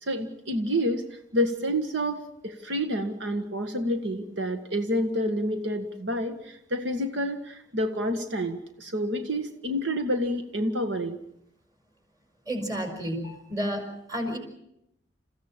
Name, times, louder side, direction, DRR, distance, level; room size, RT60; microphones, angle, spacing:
voice 1, 0.0-11.2, equal, 75° right, 7 dB, 1.8 m, -29 dB
voice 2, 12.5-14.4, equal, 20° right, 5 dB, 4.9 m, -31 dB
28.5 x 15.5 x 7.4 m, 0.78 s
head